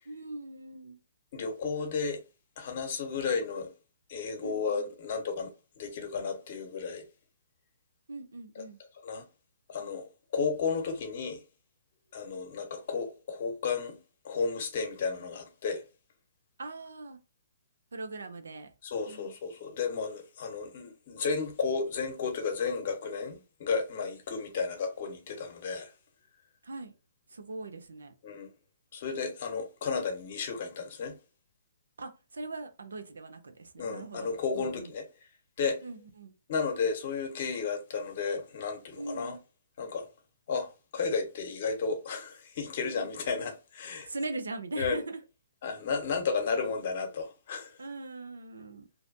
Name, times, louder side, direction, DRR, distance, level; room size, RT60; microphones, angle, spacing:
voice 1, 0.1-1.0 4.4-4.8 8.1-8.8 16.6-17.2 17.9-18.7 19.1-19.3 26.6-26.9 27.3-28.1 32.0-34.9 35.8-36.3 39.0-39.4 42.8-43.1 44.1-45.2 47.8-48.9, right 2 dB, 80° right, 0.6 m, -40 dB
voice 2, 1.3-2.2 2.6-3.7 4.1-5.5 5.8-7.0 8.5-8.6 9.0-9.2 9.7-10.0 10.3-11.4 12.1-14.0 14.2-15.8 18.8-25.9 28.2-28.5 28.9-31.2 33.8-35.1 35.6-35.8 36.5-39.4 39.8-40.1 40.5-44.1 44.8-45.0 45.6-47.8, left 5 dB, 50° left, 0.9 m, -33 dB
2.7 x 2.2 x 2.6 m
hypercardioid pair, 140°, 0 cm